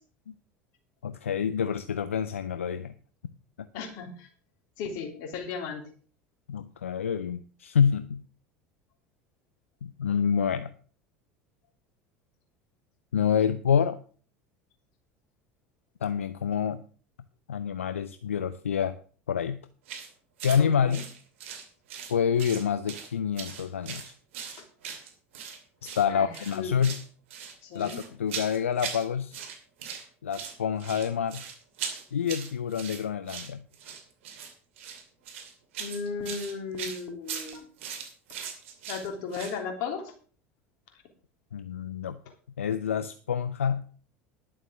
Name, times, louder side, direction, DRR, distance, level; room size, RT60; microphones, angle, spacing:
voice 1, 1.0-2.9 3.6-3.7 6.5-8.2 9.8-10.7 13.1-14.0 16.0-16.8 17.5-19.0 19.3-19.6 20.4-21.1 22.1-24.1 26.0-27.0 27.7-27.9 28.2-29.4 30.2-31.4 32.1-33.6 41.5-42.2 42.6-44.0, left 7 dB, 90° left, 12 dB, 0.5 m, -27 dB
voice 2, 3.7-4.3 4.8-5.9 20.6-21.0 26.1-26.7 27.6-28.0 35.8-37.7 38.9-40.1, left 5 dB, 60° left, 4 dB, 3.2 m, -35 dB
sound 1, 19.9-20.1 20.4-20.6 20.9-22.1 22.4-23.1 23.4-25.6 25.8-26.1 26.3-27.1 27.3-29.1 29.3-30.0 30.3-39.6, right 7 dB, 75° right, 2.5 m, -39 dB
11.0 x 7.4 x 6.3 m, 0.41 s
hypercardioid pair, 75°, 7 cm